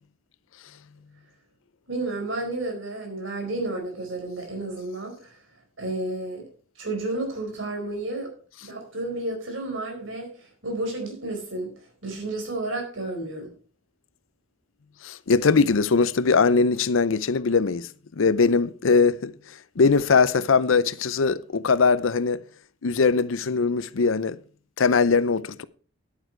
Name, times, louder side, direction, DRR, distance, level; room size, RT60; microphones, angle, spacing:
voice 1, 1.9-5.4 5.8-6.5 6.8-8.3 8.6-13.5, right 2 dB, 70° right, 4.4 m, -31 dB
voice 2, 15.0-17.9 18.2-19.3 19.8-22.4 22.8-24.4 24.8-25.6, left 4 dB, 75° left, 0.6 m, -21 dB
10.5 x 9.4 x 4.5 m
head